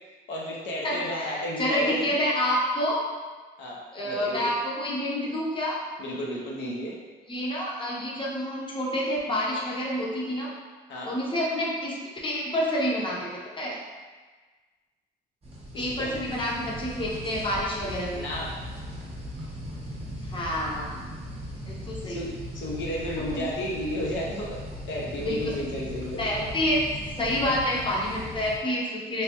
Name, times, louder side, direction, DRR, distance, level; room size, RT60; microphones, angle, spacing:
voice 1, 0.3-2.0 3.6-4.5 6.0-7.0 10.9-11.1 15.7-16.1 18.1-18.6 22.0-24.6 24.9-26.3, left 1 dB, 70° left, -4 dB, 0.6 m, -33 dB
voice 2, 0.8-3.1 3.9-5.8 7.3-10.5 11.0-11.9 12.2-13.3 13.6-13.8 15.8-18.3 20.2-20.9 21.7-22.2 23.3-23.5 25.2-25.5 26.2-26.8 27.2-29.2, equal, 25° left, -4 dB, 0.7 m, -28 dB
sound 1, 15.4-28.6, equal, 30° right, 0.8 m, -38 dB
3.2 x 2.2 x 2.8 m, 1.4 s
cardioid pair, 90°, 20 cm